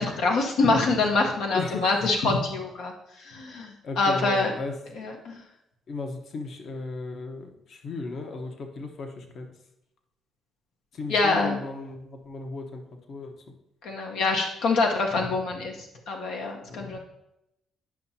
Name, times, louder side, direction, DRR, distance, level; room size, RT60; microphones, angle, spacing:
voice 1, 0.0-2.9 3.2-4.5 5.0-5.4 11.1-11.6 13.8-15.8 16.1-17.0, left 3 dB, 85° left, 1 dB, 1.0 m, -25 dB
voice 2, 1.5-2.0 3.8-5.2 5.9-9.5 10.9-12.8 13.1-13.4 16.7-16.9, left 3 dB, 60° left, 4 dB, 1.0 m, -36 dB
10.5 x 5.9 x 2.8 m, 0.85 s
cardioid pair, 90°, 0 cm